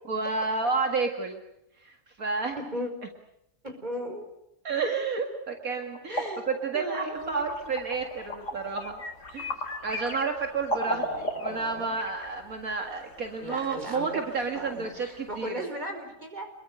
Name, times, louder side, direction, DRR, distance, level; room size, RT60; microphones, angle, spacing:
voice 1, 0.1-1.4 1.8-2.6 4.6-9.0 9.3-9.5 9.8-15.7, right 4 dB, 65° right, 4 dB, 2.4 m, -31 dB
voice 2, 2.5-2.9 3.6-4.3 6.1-6.5 6.7-7.5 10.7-11.9 13.4-14.2 14.5-16.5, equal, 30° right, 5 dB, 4.9 m, -37 dB
sound 1, 5.5-12.1, equal, 50° left, 3.8 m, -36 dB
sound 2, 7.1-15.5, left 4 dB, 70° left, 2.4 m, -46 dB
28.0 x 22.0 x 6.6 m, 0.84 s
omnidirectional pair, 1.6 m